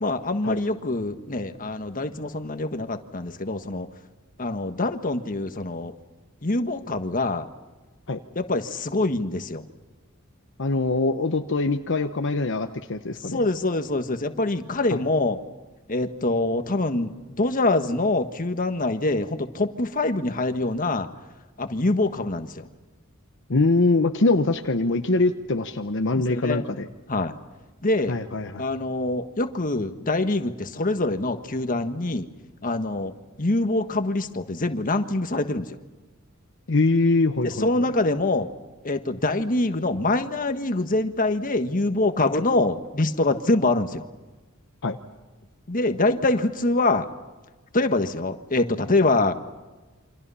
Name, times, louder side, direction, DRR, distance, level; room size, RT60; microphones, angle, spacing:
voice 1, 0.0-3.9 4.4-5.9 6.4-7.5 8.3-9.6 13.3-15.4 15.9-21.1 21.6-22.7 26.1-26.6 27.1-27.3 27.8-28.1 28.6-32.3 32.6-33.1 33.4-35.7 37.4-38.5 38.8-44.0 45.7-47.0 47.7-49.3, left 2 dB, 40° left, 8 dB, 1.5 m, -24 dB
voice 2, 10.6-13.4 14.9-15.0 23.5-26.9 28.1-28.7 36.7-37.7 44.8-45.0, left 3 dB, 60° left, 6 dB, 1.0 m, -23 dB
28.5 x 25.5 x 5.6 m, 1.2 s
head